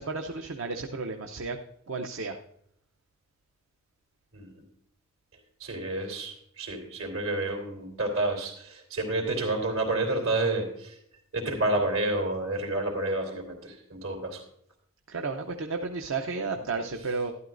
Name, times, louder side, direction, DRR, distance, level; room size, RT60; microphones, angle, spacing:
voice 1, 0.0-1.6 1.9-2.4 15.1-17.3, right 4 dB, 70° right, 5 dB, 0.7 m, -32 dB
voice 2, 5.6-11.0 11.3-14.4, right 2 dB, 90° right, 1 dB, 3.2 m, -29 dB
12.5 x 12.0 x 2.6 m, 0.71 s
head